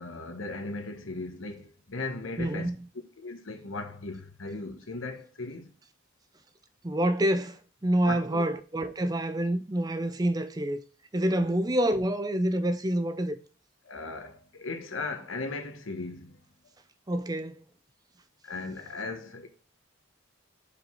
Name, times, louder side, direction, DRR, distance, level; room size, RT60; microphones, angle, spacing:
voice 1, 0.0-2.7 3.2-5.7 8.0-8.4 11.4-11.5 13.8-16.4 18.4-19.5, left 3 dB, 75° left, 1.2 m, -37 dB
voice 2, 2.4-2.8 6.8-10.8 11.1-13.4 17.1-17.6, right 1 dB, 20° right, 0.5 m, -27 dB
5.2 x 4.7 x 5.4 m
head